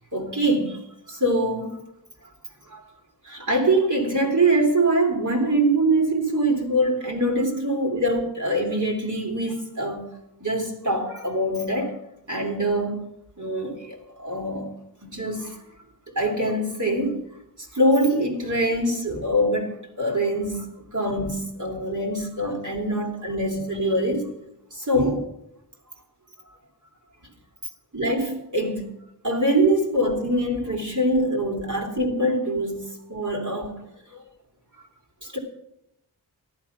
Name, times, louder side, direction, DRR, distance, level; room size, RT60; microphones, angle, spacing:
voice 1, 0.1-0.8 1.1-1.8 2.7-2.8 3.2-10.1 10.4-12.0 12.3-13.1 13.4-14.7 15.0-15.6 16.1-17.2 17.7-24.3 24.7-25.3 27.9-28.9 29.2-33.8 34.1-34.2 35.2-35.4, right 1 dB, 50° right, 3.2 m, -24 dB
14.0 x 11.0 x 5.9 m
wide cardioid pair, 70°, 39 cm